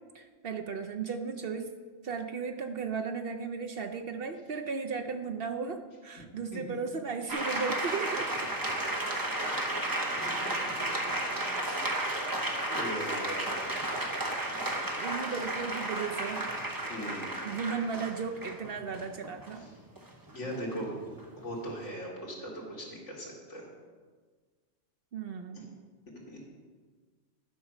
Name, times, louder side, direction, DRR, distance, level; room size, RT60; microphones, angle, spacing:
voice 1, 0.1-1.7 2.0-8.5 11.6-11.8 15.0-16.5 17.4-19.6 25.1-25.7, right 5 dB, 60° right, 5 dB, 0.7 m, -35 dB
sound 1, 7.3-21.7, right 1 dB, 20° right, 0.8 m, -33 dB
voice 2, 12.7-13.5 16.7-17.4 20.3-20.9 21.4-23.7 25.5-25.6 26.3-26.5, equal, 70° left, -3 dB, 2.4 m, -39 dB
11.0 x 5.3 x 6.0 m, 1.5 s
omnidirectional pair, 1.3 m